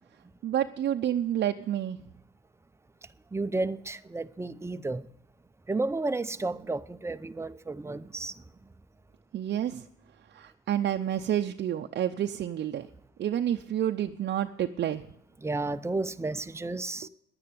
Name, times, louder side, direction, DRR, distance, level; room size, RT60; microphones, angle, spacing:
voice 1, 0.4-2.0 9.3-9.8 10.3-12.9 13.2-15.0, right 10 dB, 60° right, 0.7 m, -29 dB
voice 2, 3.3-5.1 5.7-8.4 15.4-17.1, right 2 dB, 15° right, 0.6 m, -32 dB
10.5 x 9.5 x 9.2 m
cardioid pair, 90°, 20 cm